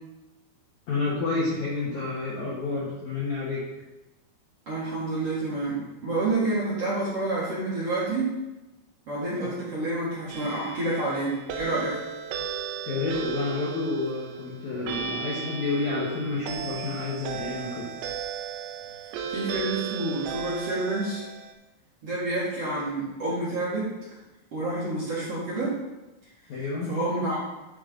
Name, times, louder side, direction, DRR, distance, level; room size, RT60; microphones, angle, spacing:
voice 1, 0.9-3.6 9.3-9.5 12.8-17.9 26.5-26.9, left 3 dB, 90° left, -6 dB, 1.6 m, -29 dB
voice 2, 4.7-8.3 9.1-12.0 19.3-21.2 22.0-23.9 24.5-25.8 26.9-27.4, right 2 dB, 45° right, -9 dB, 2.2 m, -28 dB
sound 1, 10.3-21.5, right 6 dB, 80° right, 2.6 m, -35 dB
12.5 x 5.3 x 3.9 m, 1.0 s
omnidirectional pair, 6.0 m